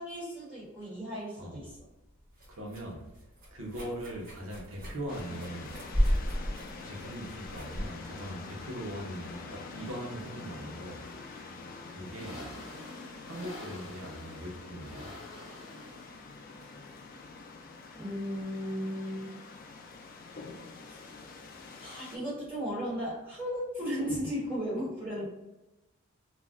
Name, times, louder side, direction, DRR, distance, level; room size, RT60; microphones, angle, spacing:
voice 1, 0.0-1.8 18.0-19.3 20.9-21.2 21.8-25.3, equal, 10° right, -10 dB, 1.1 m, -35 dB
sound 1, 1.6-9.4, equal, 40° right, 0.9 m, -35 dB
voice 2, 2.5-3.1 3.5-5.8 6.8-11.0 11.9-12.5 13.2-15.1, equal, 70° right, 0 dB, 0.7 m, -40 dB
sound 2, 5.1-22.2, left 3 dB, 40° left, 0.3 m, -46 dB
sound 3, 10.0-24.2, left 1 dB, 60° left, 0.7 m, -52 dB
2.3 x 2.1 x 3.5 m, 1.0 s
head